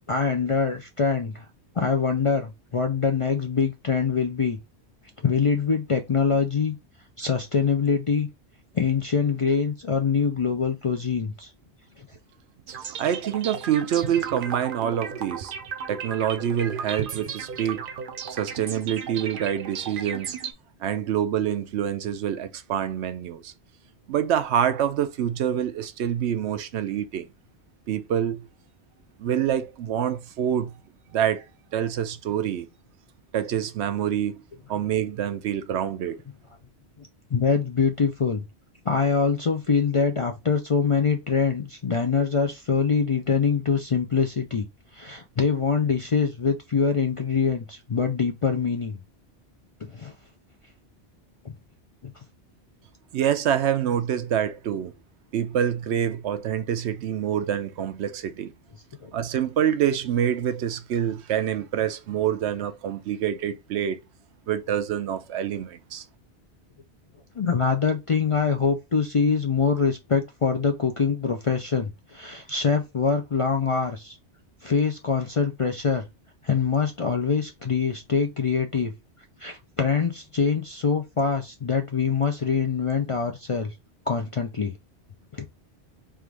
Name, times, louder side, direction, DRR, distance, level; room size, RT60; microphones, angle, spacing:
voice 1, 0.1-1.5 1.8-4.6 5.2-6.8 7.2-8.3 8.7-11.5 12.0-12.1 37.0-38.5 38.9-44.7 44.9-49.0 49.8-50.1 52.0-52.1 59.0-59.1 67.4-74.2 74.6-76.0 76.4-78.9 79.4-83.7 84.1-84.7 85.3-85.4, left 5 dB, 50° left, 0.4 m, -24 dB
sound 1, 12.7-20.5, right 6 dB, 55° right, 0.7 m, -35 dB
voice 2, 13.0-15.5 15.9-17.9 18.3-20.4 20.8-23.5 24.1-27.3 27.9-28.5 29.2-30.7 31.1-31.5 31.7-32.7 33.3-34.4 34.7-36.2 53.1-54.9 55.3-58.5 59.1-64.0 64.5-66.1, right 9 dB, 80° right, 0.9 m, -26 dB
3.5 x 2.5 x 4.5 m
omnidirectional pair, 1.1 m